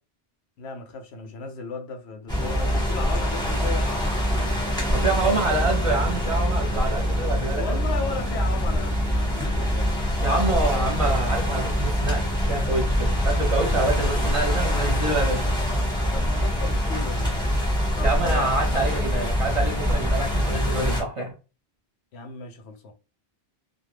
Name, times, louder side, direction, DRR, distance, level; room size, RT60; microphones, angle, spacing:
voice 1, 0.6-4.7 5.1-5.7 7.5-10.9 13.2-13.3 16.1-17.6 18.0-18.8 22.1-22.9, left 4 dB, 90° left, 0.9 m, -36 dB
sound 1, 2.3-21.0, equal, 5° left, 0.9 m, -24 dB
voice 2, 4.9-7.8 10.2-15.5 18.0-21.3, right 2 dB, 35° right, 0.7 m, -26 dB
2.3 x 2.2 x 3.2 m
omnidirectional pair, 1.1 m